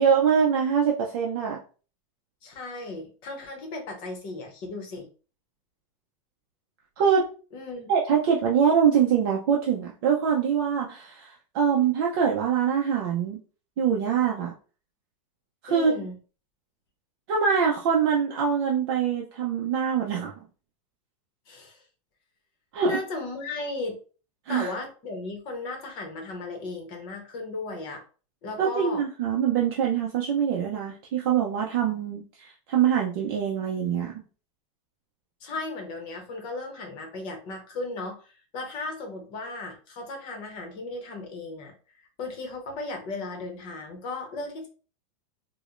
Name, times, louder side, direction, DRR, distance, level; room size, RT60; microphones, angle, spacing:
voice 1, 0.0-1.6 7.0-7.3 7.9-13.4 13.8-14.5 15.7-15.9 17.3-20.4 22.7-23.0 24.5-24.7 28.6-34.2, right 7 dB, 45° right, -1 dB, 0.5 m, -24 dB
voice 2, 2.4-5.1 7.5-7.9 15.7-16.1 21.5-21.8 22.8-24.0 24.5-28.0 28.4-29.0 35.4-44.7, left 2 dB, 30° left, 3 dB, 0.8 m, -36 dB
4.6 x 2.1 x 2.5 m, 0.36 s
supercardioid pair, 175°, 17 cm